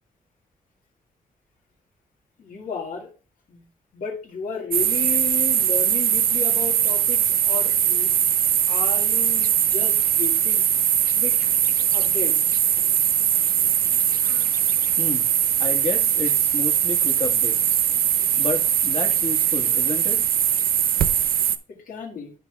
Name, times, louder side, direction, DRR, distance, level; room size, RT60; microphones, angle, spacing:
voice 1, 2.4-3.1 3.5-3.6 3.9-8.1 8.7-10.7 11.1-11.5 11.9-12.6 21.7-22.3, left 5 dB, 65° left, 1 dB, 1.9 m, -33 dB
sound 1, 4.7-21.6, right 10 dB, 80° right, 0.6 m, -21 dB
voice 2, 15.6-17.8 18.3-20.2, left 4 dB, 40° left, 2 dB, 1.8 m, -31 dB
13.0 x 4.7 x 2.4 m, 0.37 s
wide cardioid pair, 140°, 15 cm